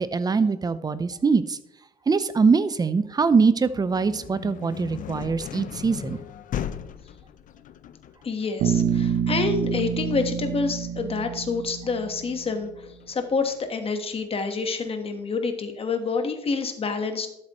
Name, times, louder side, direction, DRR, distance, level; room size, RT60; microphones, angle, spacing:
voice 1, 0.0-1.6 2.1-6.2, right 4 dB, 25° right, 14 dB, 0.6 m, -22 dB
sound 1, 3.6-13.4, left 10 dB, 50° left, 0.6 m, -38 dB
voice 2, 8.2-17.3, left 4 dB, 35° left, 7 dB, 1.3 m, -28 dB
Bass guitar, 8.6-12.6, right 8 dB, 85° right, 0.9 m, -27 dB
12.5 x 7.4 x 3.1 m, 0.84 s
cardioid pair, 110°, 17 cm